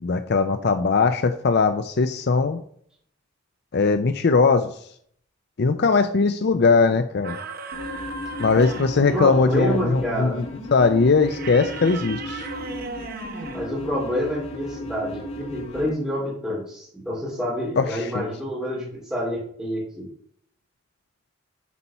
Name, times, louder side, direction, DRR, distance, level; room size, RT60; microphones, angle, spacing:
voice 1, 0.0-2.6 3.7-4.7 5.6-7.4 8.4-10.4 10.7-12.5 17.8-18.2, left 4 dB, 55° left, 9 dB, 0.5 m, -20 dB
sound 1, 7.2-9.1 11.2-13.7, right 4 dB, 50° right, 0.8 m, -36 dB
sound 2, 7.7-15.9, left 1 dB, 90° left, 1.6 m, -35 dB
voice 2, 9.0-10.4 13.5-20.1, equal, 5° right, -8 dB, 2.4 m, -28 dB
8.3 x 4.3 x 5.5 m, 0.63 s
head